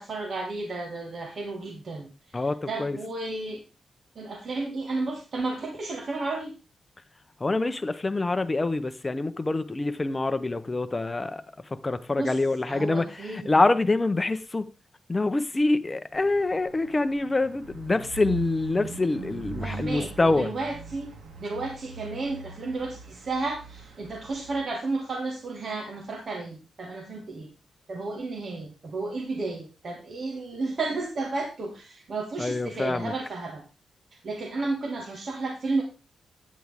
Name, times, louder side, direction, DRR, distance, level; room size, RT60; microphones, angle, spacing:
voice 1, 0.0-3.6 4.2-6.5 12.2-12.4 12.7-13.5 19.6-21.1 21.4-27.5 27.9-33.6 34.2-35.8, right 3 dB, 50° right, 1.8 m, -32 dB
voice 2, 2.3-3.0 7.4-11.4 11.7-14.7 15.1-20.5 32.4-33.1, left 2 dB, 20° left, 0.7 m, -26 dB
sound 1, 16.1-24.6, right 4 dB, 90° right, 1.8 m, -42 dB
9.4 x 8.6 x 3.5 m
wide cardioid pair, 120°, 0 cm